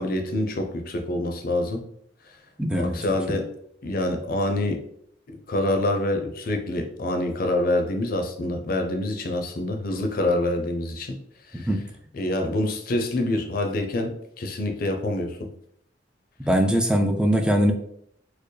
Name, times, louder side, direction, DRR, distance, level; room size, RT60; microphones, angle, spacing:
voice 1, 0.0-1.8 2.7-3.5 3.8-4.8 5.5-11.1 11.5-11.7 12.1-15.5, left 1 dB, 50° left, 5 dB, 0.5 m, -26 dB
voice 2, 2.6-3.0 3.3-3.4 11.5-11.8 16.4-17.7, equal, 5° right, 5 dB, 0.3 m, -21 dB
4.4 x 2.0 x 3.1 m, 0.69 s
head